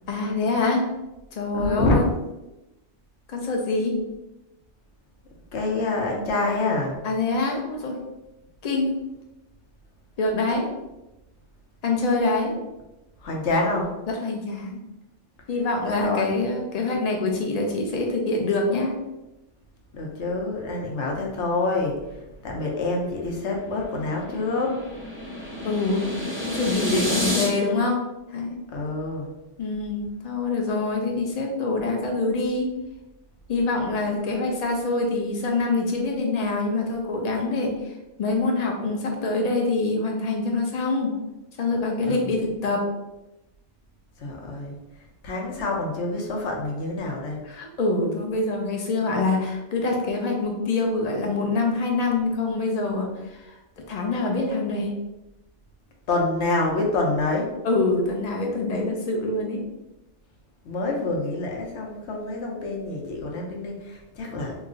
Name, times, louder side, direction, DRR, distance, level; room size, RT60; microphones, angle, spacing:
voice 1, 0.1-0.9 1.3-2.1 3.3-4.0 7.0-8.0 8.6-8.9 10.2-10.7 11.8-12.5 14.1-14.8 15.5-19.0 25.6-26.1 26.5-28.0 28.3-28.6 29.6-32.7 33.5-37.9 38.2-41.2 41.6-42.8 47.5-55.0 57.6-59.6, left 3 dB, 45° left, 1 dB, 0.6 m, -25 dB
voice 2, 1.5-2.1 5.5-7.0 13.2-13.9 15.8-16.4 19.9-24.7 28.7-29.3 42.0-42.3 44.2-44.8 45.2-47.4 56.1-57.5 60.6-64.5, left 2 dB, 70° left, 0 dB, 1.0 m, -27 dB
sound 1, 23.2-27.5, left 1 dB, 15° right, 0.6 m, -30 dB
3.0 x 2.4 x 3.7 m, 0.98 s
omnidirectional pair, 1.2 m